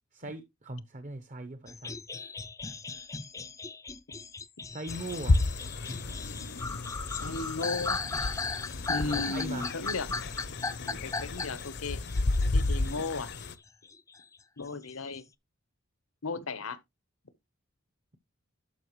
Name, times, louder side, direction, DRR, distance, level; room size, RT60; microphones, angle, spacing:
voice 1, 0.1-2.0 4.7-5.4 9.1-9.6, right 2 dB, 40° right, 0.8 m, -40 dB
sound 1, 1.7-13.5 13.8-15.2, left 4 dB, 15° left, 0.4 m, -37 dB
sound 2, 4.9-13.5, left 2 dB, 55° left, 0.7 m, -32 dB
voice 2, 7.1-8.0 8.9-10.2 10.8-12.0 12.5-13.3 14.6-15.2 16.2-16.8, left 3 dB, 80° left, 1.0 m, -35 dB
11.5 x 5.7 x 3.1 m
head